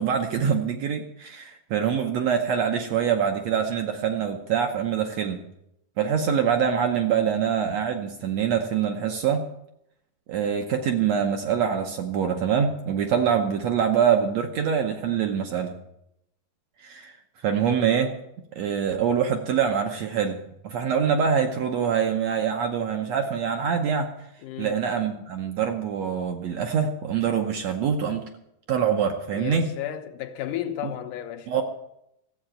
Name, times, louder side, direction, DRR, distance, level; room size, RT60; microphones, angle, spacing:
voice 1, 0.0-5.4 6.0-9.5 10.3-15.7 16.8-17.1 17.4-18.1 18.5-24.1 24.6-28.2 28.7-29.7 30.8-30.9 31.5-31.6, right 7 dB, 70° right, 1.8 m, -24 dB
voice 2, 24.4-24.8 29.3-31.5, left 11 dB, 75° left, 2.3 m, -33 dB
14.5 x 7.8 x 9.0 m
omnidirectional pair, 3.9 m